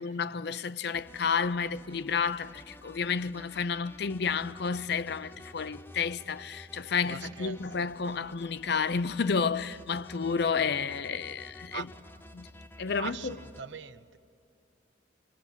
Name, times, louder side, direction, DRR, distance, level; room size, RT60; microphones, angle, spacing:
voice 1, 0.0-11.9 12.3-12.5 12.8-13.4, left 5 dB, 60° left, 0.5 m, -31 dB
sound 1, 0.9-13.6, left 1 dB, 10° left, 0.6 m, -51 dB
voice 2, 7.1-7.6 11.7-11.9 13.0-14.2, right 6 dB, 80° right, 0.8 m, -40 dB
27.0 x 25.5 x 8.0 m
head